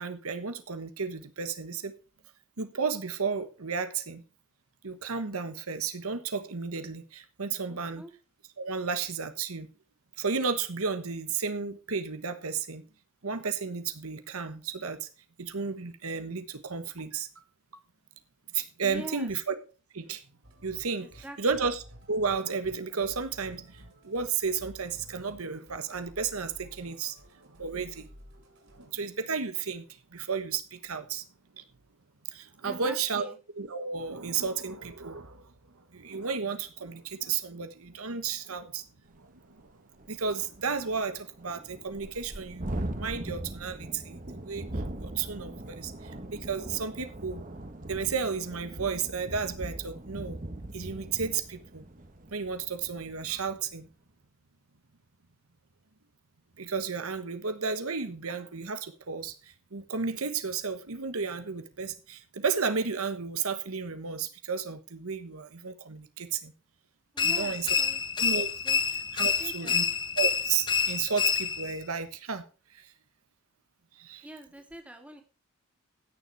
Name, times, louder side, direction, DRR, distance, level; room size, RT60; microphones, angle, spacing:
voice 1, 0.0-1.9 2.6-4.2 4.8-8.0 8.6-9.7 10.2-12.8 13.2-15.1 15.4-17.4 17.7-17.8 18.5-19.5 19.9-20.2 20.6-21.8 22.1-27.2 27.6-28.1 28.7-29.8 30.1-31.2 31.6-31.7 32.3-33.3 33.6-38.8 39.1-39.7 40.1-44.6 45.0-47.4 47.9-50.4 50.7-51.8 52.3-53.9 56.6-66.5 67.2-67.8 68.2-68.5 69.1-69.9 70.2-72.4 72.7-72.9 73.9-74.3, right 5 dB, 90° right, 1.3 m, -33 dB
voice 2, 7.7-8.1 18.8-19.4 21.0-21.4 32.6-33.4 67.1-68.0 68.6-68.8 69.2-69.8 74.2-75.2, right 1 dB, 5° right, 2.2 m, -44 dB
Musical instrument, 20.4-28.9, equal, 60° right, 4.5 m, -53 dB
Thunderstorm, 39.1-39.2 39.6-39.7 40.0-53.6, right 1 dB, 40° right, 1.3 m, -40 dB
sound 1, 67.2-71.8, left 6 dB, 20° left, 0.6 m, -28 dB
16.0 x 6.9 x 4.7 m
head